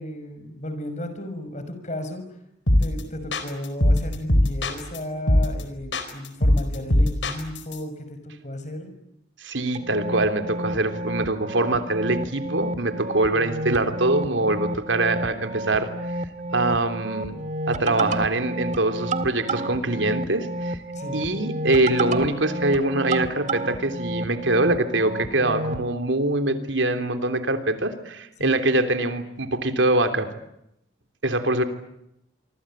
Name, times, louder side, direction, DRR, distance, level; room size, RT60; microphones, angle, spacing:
voice 1, 0.0-2.2 2.7-8.9 20.9-21.2 28.4-28.6, left 1 dB, 40° left, 9 dB, 5.9 m, -34 dB
sound 1, 2.7-3.0 3.3-5.0 5.3-5.6 5.9-7.8, left 1 dB, 75° left, 4.6 m, -20 dB
voice 2, 9.4-15.9 16.5-17.4 17.7-20.8 21.1-30.3 31.2-31.6, right 2 dB, 80° right, 7 dB, 3.3 m, -23 dB
sound 2, 9.7-25.8, right 1 dB, 40° right, 1.9 m, -31 dB
26.5 x 25.0 x 9.0 m, 0.83 s
head